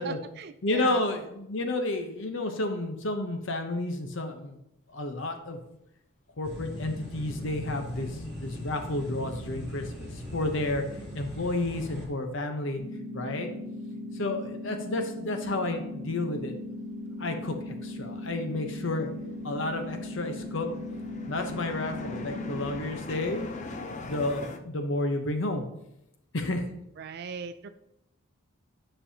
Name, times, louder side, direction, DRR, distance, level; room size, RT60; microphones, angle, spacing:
voice 1, 0.0-1.0 27.0-27.7, right 5 dB, 50° right, 9 dB, 0.3 m, -39 dB
voice 2, 0.6-4.6 4.9-5.6 6.4-10.8 11.1-12.8 13.1-13.5 14.1-16.5 17.2-19.1 19.4-20.7 21.3-23.5 24.0-25.6 26.3-26.6, left 2 dB, 60° left, 6 dB, 0.8 m, -31 dB
sound 1, 6.4-12.1, left 1 dB, ahead, 2.8 m, -39 dB
sound 2, 12.2-13.2 13.5-24.6, left 2 dB, 35° left, 0.5 m, -43 dB
sound 3, 12.8-22.8, left 1 dB, 15° right, 2.4 m, -38 dB
9.9 x 5.4 x 2.8 m, 0.82 s
head